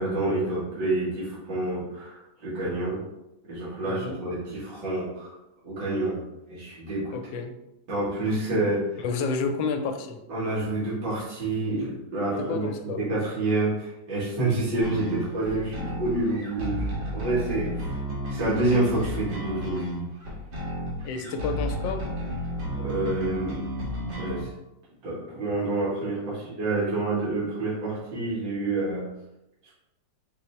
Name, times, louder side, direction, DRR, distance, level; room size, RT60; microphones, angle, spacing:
voice 1, 0.0-3.0 3.5-5.3 5.6-6.2 6.5-7.1 7.9-9.0 10.3-18.0 18.3-19.9 21.2-21.3 22.8-23.6 24.2-24.5 25.0-29.1, right 2 dB, 65° right, -9 dB, 2.2 m, -28 dB
voice 2, 3.9-4.2 7.1-7.6 9.0-10.2 12.4-13.0 21.0-22.1, left 4 dB, 80° left, 7 dB, 1.3 m, -30 dB
sound 1, 14.8-24.4, equal, 80° right, 2.0 m, -32 dB
5.3 x 2.0 x 4.2 m, 0.92 s
omnidirectional pair, 2.0 m